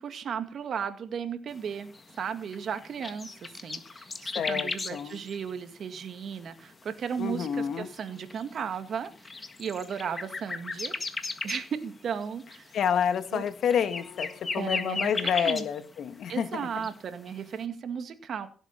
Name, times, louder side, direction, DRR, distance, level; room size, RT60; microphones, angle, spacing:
voice 1, 0.0-11.0 11.4-12.7 13.3-13.4 14.6-15.7 16.3-18.5, right 7 dB, 60° right, 2.0 m, -35 dB
sound 1, 1.5-16.2 16.5-17.4, left 3 dB, 30° left, 1.7 m, -37 dB
voice 2, 4.3-5.2 7.2-7.9 12.7-16.9, left 8 dB, 65° left, 1.6 m, -29 dB
16.5 x 8.0 x 5.7 m
cardioid pair, 90°, 0 cm